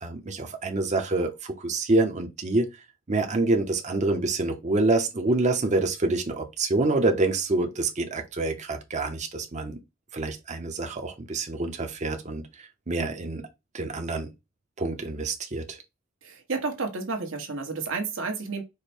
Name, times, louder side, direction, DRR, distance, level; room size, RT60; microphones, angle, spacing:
voice 1, 0.0-2.7 3.1-9.8 10.1-12.4 12.9-13.4 13.7-14.3 14.8-15.8, right 2 dB, 35° right, 0.8 m, -26 dB
voice 2, 16.2-18.6, right 4 dB, 75° right, 1.3 m, -31 dB
5.0 x 2.2 x 4.3 m
head